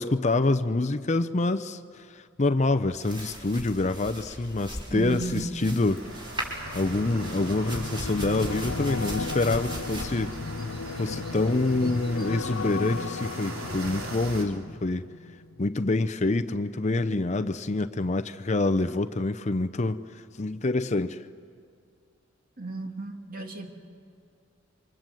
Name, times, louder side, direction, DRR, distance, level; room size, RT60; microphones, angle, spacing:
voice 1, 0.0-6.0 6.7-10.4 10.9-15.1 15.6-20.0 20.4-21.2, left 2 dB, 35° left, 10 dB, 0.6 m, -26 dB
sound 1, 2.9-12.9, equal, 25° right, 5.1 m, -40 dB
voice 2, 4.9-5.7 22.6-23.7, right 3 dB, 45° right, 3 dB, 2.8 m, -34 dB
sound 2, 5.9-14.4, right 2 dB, 85° right, 3.9 m, -41 dB
sound 3, 6.3-15.7 16.0-16.3, left 3 dB, 80° left, 0.6 m, -35 dB
28.5 x 25.5 x 7.8 m, 2.3 s
head